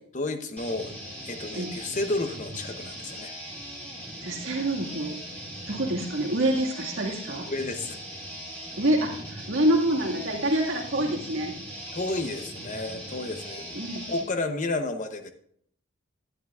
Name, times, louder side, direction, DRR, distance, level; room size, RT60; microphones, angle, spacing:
voice 1, 0.1-1.0 1.2-3.3 7.5-8.0 11.9-13.8 14.1-15.3, left 2 dB, 35° left, 7 dB, 0.8 m, -31 dB
sound 1, 0.6-14.3, right 1 dB, 10° left, 2.2 m, -40 dB
voice 2, 4.2-5.2 5.7-7.5 8.8-11.5 13.7-14.1, right 1 dB, 65° right, -1 dB, 1.8 m, -26 dB
12.0 x 10.0 x 2.4 m, 0.66 s
head